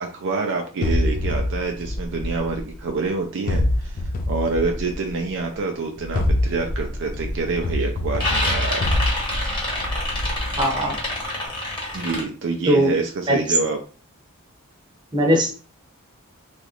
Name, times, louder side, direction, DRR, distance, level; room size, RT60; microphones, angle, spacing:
voice 1, 0.0-9.0 11.9-13.8, right 3 dB, 60° right, 3 dB, 0.4 m, -27 dB
sound 1, 0.8-2.9 3.5-5.3 6.0-11.0, left 1 dB, 40° left, 0.4 m, -25 dB
sound 2, 6.5-6.7 7.2-7.7 7.9-12.2, left 1 dB, 20° left, 1.1 m, -27 dB
voice 2, 10.6-11.0 12.7-12.9 13.3-13.4 15.1-15.5, equal, 20° right, 0 dB, 0.8 m, -19 dB
3.0 x 2.4 x 2.9 m, 0.37 s
head